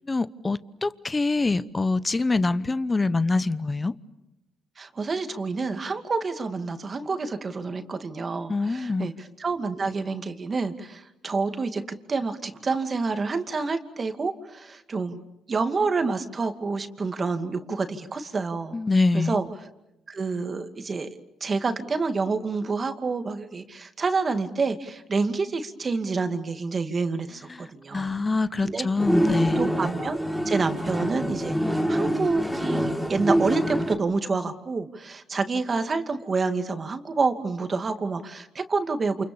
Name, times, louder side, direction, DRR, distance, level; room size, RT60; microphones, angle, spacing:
voice 1, 0.1-3.9 8.5-9.1 18.7-19.4 27.5-29.7, left 3 dB, 25° left, 0.9 m, -25 dB
voice 2, 4.8-11.8 12.1-15.2 15.5-18.8 19.1-19.5 20.1-21.1 21.4-28.2 28.6-28.9 29.6-30.2 30.5-39.2, right 4 dB, 35° right, 2.4 m, -28 dB
sound 1, 29.0-33.9, equal, 5° right, 4.8 m, -25 dB
29.0 x 28.5 x 7.2 m
cardioid pair, 90°, 0 cm